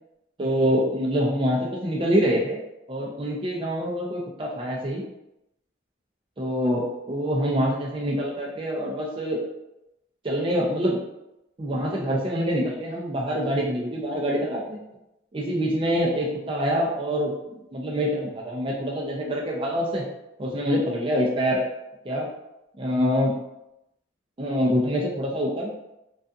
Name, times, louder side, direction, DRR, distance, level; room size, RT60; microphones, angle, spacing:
voice 1, 0.4-2.6 2.9-5.0 6.4-9.4 10.2-11.0 11.6-14.8 15.3-17.3 17.7-20.0 20.4-21.6 22.0-22.3 22.8-23.3 24.4-25.7, equal, 25° right, -3 dB, 0.4 m, -25 dB
2.4 x 2.3 x 2.5 m, 0.88 s
head